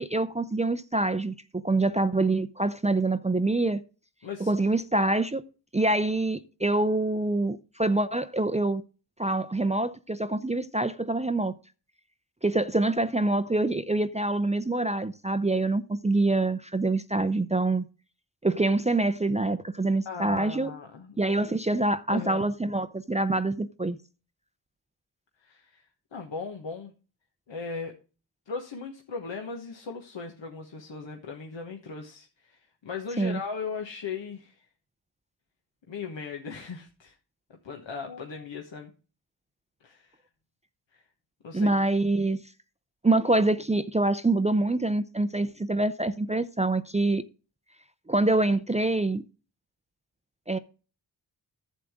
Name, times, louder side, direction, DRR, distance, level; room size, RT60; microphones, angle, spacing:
voice 1, 0.0-3.8 4.4-5.4 5.7-8.8 9.2-11.6 12.4-17.9 18.4-20.7 21.2-24.0 33.2-33.4 41.5-42.4 43.0-47.2 48.1-49.2 50.5-50.6, right 2 dB, 15° right, 0.5 m, -25 dB
voice 2, 20.0-21.2 22.1-22.5 25.4-25.8 26.1-26.9 27.5-27.9 28.5-34.7 35.9-37.1 37.5-38.9 39.8-40.2 40.9-41.0 41.4-41.7, left 4 dB, 75° left, 1.3 m, -38 dB
11.0 x 7.5 x 3.6 m
cardioid pair, 45°, 45 cm